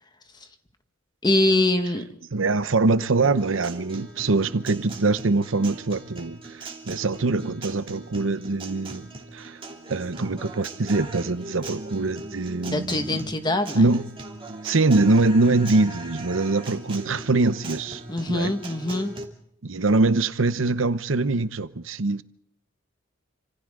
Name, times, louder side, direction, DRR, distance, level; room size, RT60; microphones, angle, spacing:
voice 1, 1.2-2.0 12.7-13.9 18.1-19.1, left 2 dB, 20° left, 1.7 m, -23 dB
voice 2, 2.3-6.6 6.9-9.6 9.9-13.2 13.7-14.1 14.6-18.0 18.3-18.5 19.6-22.2, right 3 dB, 70° right, 0.9 m, -23 dB
Guitar, 3.2-19.2, right 2 dB, 25° right, 2.8 m, -39 dB
29.5 x 26.5 x 3.8 m
head